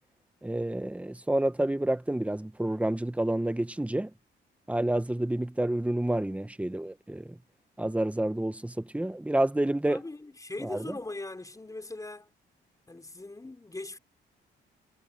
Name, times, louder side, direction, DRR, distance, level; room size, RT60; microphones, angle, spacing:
voice 1, 0.4-4.1 4.7-7.4 7.8-10.0 10.6-10.9, right 1 dB, 5° right, 1.2 m, -29 dB
voice 2, 9.9-12.3 12.9-14.0, left 2 dB, 15° left, 4.2 m, -40 dB
cardioid pair, 90°, 20 cm